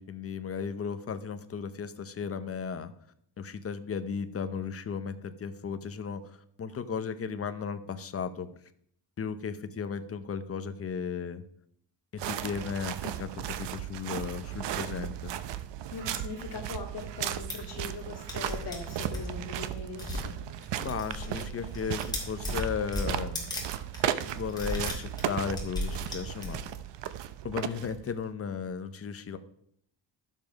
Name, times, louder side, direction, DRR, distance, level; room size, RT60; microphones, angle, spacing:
voice 1, 0.0-2.9 3.4-8.5 9.2-11.4 12.2-15.3 20.8-23.6 24.2-26.7 27.4-29.4, left 6 dB, 30° left, 10 dB, 0.7 m, -35 dB
sound 1, 12.2-28.2, right 11 dB, 70° right, 0.8 m, -36 dB
voice 2, 15.9-20.4, left 4 dB, 55° left, 2 dB, 2.3 m, -41 dB
sound 2, 17.3-17.5 18.0-18.1 18.3-19.3 20.0-20.3 20.6-21.5 21.7-23.6 23.9-24.0 24.5-26.7, left 1 dB, 10° left, 3.0 m, -35 dB
12.5 x 7.4 x 5.2 m, 0.70 s
cardioid pair, 175°, 44 cm